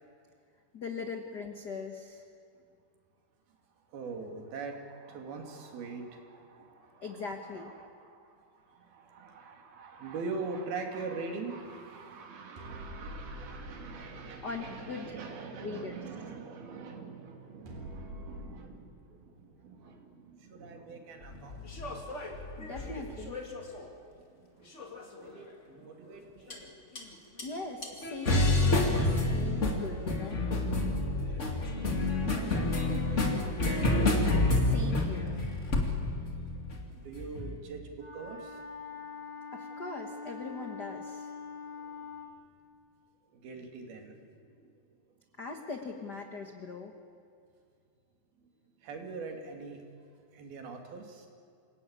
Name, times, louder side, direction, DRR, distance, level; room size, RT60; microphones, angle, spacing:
voice 1, 0.7-2.2 7.0-7.7 14.4-15.3 15.6-16.0 22.6-23.4 27.4-30.4 34.5-35.4 39.5-41.3 45.4-46.9, left 4 dB, 75° left, 4 dB, 0.9 m, -40 dB
voice 2, 3.9-21.7 22.3-22.5 24.1-24.7 25.1-26.6 31.4-33.9 36.9-38.6 41.8-42.1 43.3-44.1 44.5-44.7 48.8-49.8 50.3-51.3, right 4 dB, 85° right, 3 dB, 4.4 m, -43 dB
sound 1, 12.6-18.5, right 1 dB, 65° right, 5.7 m, -47 dB
sound 2, 21.3-23.9 24.8-25.3 26.5-26.6 27.0-27.1 27.4-27.5 27.8-37.6, left 2 dB, 25° left, 2.0 m, -29 dB
Wind instrument woodwind instrument, 37.9-42.4, left 5 dB, 10° right, 2.6 m, -43 dB
27.0 x 18.0 x 8.8 m, 2.4 s
omnidirectional pair, 4.2 m